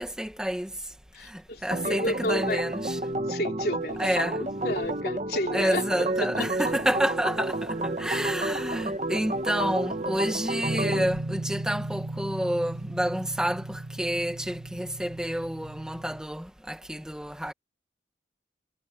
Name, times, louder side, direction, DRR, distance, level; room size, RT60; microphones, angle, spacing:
voice 1, 0.0-3.1 4.0-4.4 5.5-17.5, equal, 5° right, 1.5 m, -29 dB
voice 2, 1.1-2.7 3.3-4.3 4.6-6.1, left 1 dB, 55° left, 3.7 m, -31 dB
Organ, 1.7-11.1, right 1 dB, 40° right, 1.5 m, -31 dB
sound 1, 10.6-16.2, right 2 dB, 65° right, 1.3 m, -36 dB
head